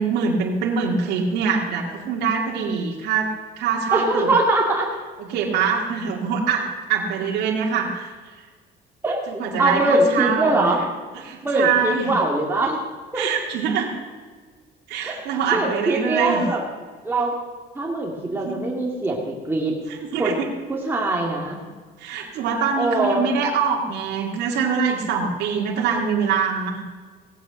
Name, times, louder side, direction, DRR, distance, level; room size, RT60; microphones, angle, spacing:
voice 1, 0.0-4.3 5.2-8.1 9.3-10.7 11.2-12.1 13.2-13.9 14.9-16.4 18.3-18.7 19.9-20.5 22.0-26.8, right 6 dB, 80° right, -1 dB, 2.1 m, -24 dB
voice 2, 3.9-4.9 9.0-10.8 11.4-12.8 13.1-13.3 15.0-16.6 17.0-17.3 17.7-19.7 20.2-20.4 20.7-21.6 22.8-23.2, right 2 dB, 15° right, -2 dB, 2.2 m, -22 dB
17.5 x 8.1 x 6.4 m, 1.5 s
cardioid pair, 110°, 17 cm